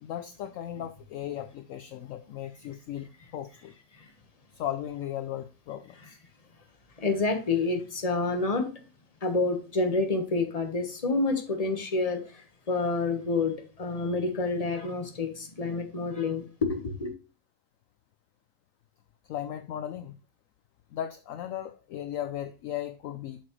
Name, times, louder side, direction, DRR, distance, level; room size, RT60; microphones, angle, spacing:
voice 1, 0.0-3.1 3.3-3.7 4.5-6.2 19.2-20.2 20.9-23.4, left 11 dB, 70° left, 0.8 m, -36 dB
voice 2, 7.0-8.7 9.2-17.1, left 3 dB, 25° left, 1.2 m, -28 dB
8.4 x 6.0 x 3.1 m
omnidirectional pair, 1.7 m